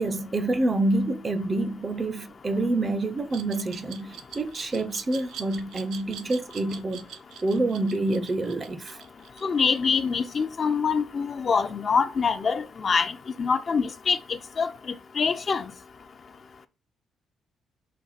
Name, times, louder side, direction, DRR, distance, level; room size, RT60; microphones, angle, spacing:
voice 1, 0.0-7.1 7.4-9.0, right 2 dB, 30° right, 0.5 m, -27 dB
Glass, 3.3-10.1, right 8 dB, 85° right, 0.4 m, -43 dB
voice 2, 9.4-14.7 15.2-15.6, left 5 dB, 45° left, 0.4 m, -25 dB
4.1 x 2.5 x 4.0 m
cardioid pair, 90°, 0 cm